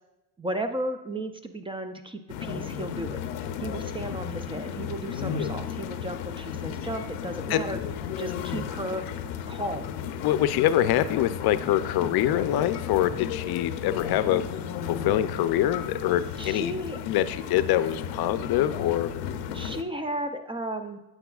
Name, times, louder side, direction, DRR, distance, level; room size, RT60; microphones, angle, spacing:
voice 1, 0.4-7.8 8.2-9.0 9.5-9.9 16.4-17.0 19.5-21.0, right 1 dB, 10° right, 7 dB, 0.4 m, -34 dB
sound 1, 2.3-19.8, left 8 dB, 90° left, 0.7 m, -34 dB
voice 2, 10.2-14.4 14.8-16.7 17.0-19.1, left 12 dB, 55° left, 12 dB, 0.6 m, -25 dB
9.6 x 7.8 x 2.4 m, 0.98 s
cardioid pair, 105°, 47 cm